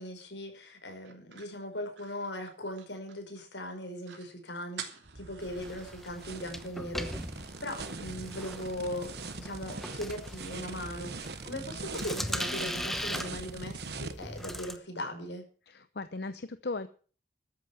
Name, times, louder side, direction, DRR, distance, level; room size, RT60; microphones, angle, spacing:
voice 1, 0.0-4.8 5.2-15.4, left 1 dB, 80° left, 5 dB, 5.2 m, -39 dB
sound 1, 1.1-3.4 3.7-3.8 4.0-4.3 4.8-6.1, right 7 dB, 90° right, 2.9 m, -47 dB
sound 2, 5.0-14.1, right 3 dB, 60° right, 1.3 m, -42 dB
sound 3, 5.4-14.8, equal, ahead, 1.0 m, -40 dB
voice 2, 15.7-16.9, left 3 dB, 60° left, 12 dB, 0.8 m, -37 dB
13.5 x 8.7 x 7.0 m, 0.41 s
head